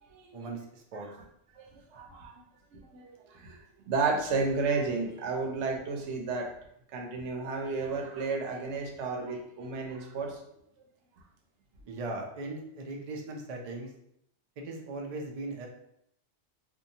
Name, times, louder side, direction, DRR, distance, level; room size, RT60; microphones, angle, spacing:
voice 1, 0.3-1.1 11.9-13.9 14.6-15.7, right 2 dB, 55° right, 1 dB, 0.4 m, -38 dB
voice 2, 1.5-2.4 2.7-3.6 3.9-6.5 6.9-10.4, right 4 dB, 85° right, 2 dB, 0.9 m, -32 dB
2.7 x 2.2 x 2.6 m, 0.74 s
omnidirectional pair, 1.2 m